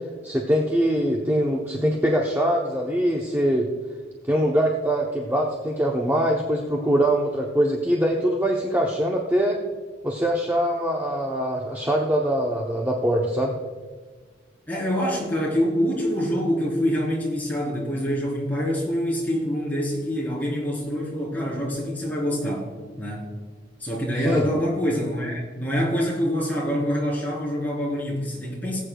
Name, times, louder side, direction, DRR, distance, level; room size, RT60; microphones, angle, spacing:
voice 1, 0.2-3.7 4.3-9.6 10.0-13.5 24.2-24.5, equal, 10° right, -1 dB, 0.8 m, -23 dB
voice 2, 14.7-23.3 23.8-28.8, equal, 10° left, -6 dB, 3.6 m, -26 dB
19.5 x 8.4 x 2.3 m, 1.5 s
head